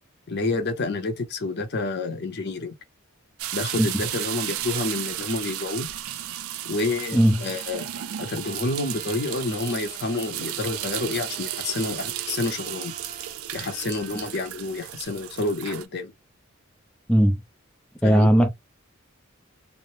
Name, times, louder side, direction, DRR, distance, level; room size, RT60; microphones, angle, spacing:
voice 1, 0.3-2.7 3.5-5.9 6.6-7.9 8.2-13.0 13.5-16.1 18.0-18.3, left 2 dB, 50° left, 0.7 m, -29 dB
sound 1, 3.4-15.9, right 12 dB, 85° right, 0.4 m, -34 dB
voice 2, 7.1-7.4 17.1-17.4 18.0-18.5, equal, 5° left, 0.5 m, -17 dB
sound 2, 8.4-14.4, right 3 dB, 35° right, 0.8 m, -46 dB
3.2 x 2.1 x 2.6 m
head